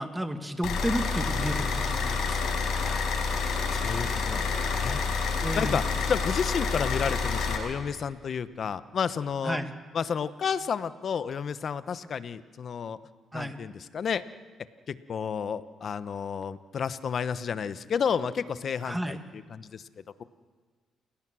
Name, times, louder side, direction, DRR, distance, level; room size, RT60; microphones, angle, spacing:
voice 1, 0.0-2.4 5.4-5.8 9.4-9.7 13.3-13.6 18.8-19.2, equal, 5° right, 7 dB, 2.0 m, -32 dB
sound 1, 0.6-7.6, left 4 dB, 75° left, 5.0 m, -28 dB
voice 2, 2.8-5.0 5.5-5.8 6.1-9.6 9.9-13.0 13.3-14.2 14.9-19.8, left 7 dB, 55° left, 13 dB, 1.0 m, -31 dB
29.0 x 17.5 x 6.2 m, 1.5 s
cardioid pair, 90°, 0 cm